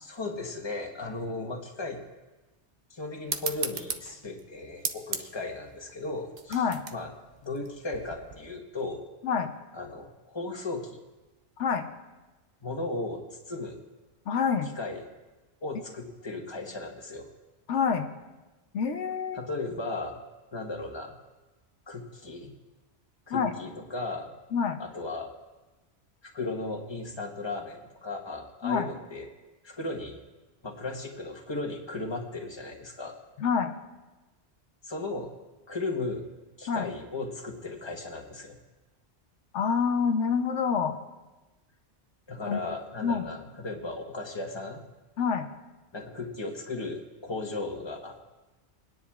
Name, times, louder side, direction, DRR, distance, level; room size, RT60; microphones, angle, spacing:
voice 1, 0.0-2.0 2.9-6.6 6.9-7.1 7.4-9.0 9.7-11.0 12.6-13.8 14.8-15.0 15.6-17.3 19.3-20.2 20.5-21.2 21.9-22.5 23.3-24.3 24.8-25.3 26.2-29.3 29.6-30.2 30.6-33.2 34.8-35.3 35.7-36.2 36.6-38.6 42.3-44.8 45.9-48.2, left 2 dB, 25° left, 2 dB, 1.2 m, -36 dB
sound 1, 3.3-8.4, right 6 dB, 50° right, 0.7 m, -37 dB
voice 2, 6.5-6.8 9.2-9.5 11.6-11.9 14.3-14.7 17.7-18.1 18.7-19.4 23.3-23.5 24.5-24.8 28.6-28.9 33.4-33.7 36.7-36.9 39.5-41.0 42.4-42.6 43.0-43.3 45.2-45.5, left 6 dB, 85° left, 6 dB, 1.1 m, -27 dB
29.0 x 10.0 x 2.4 m, 1.1 s
omnidirectional pair, 1.2 m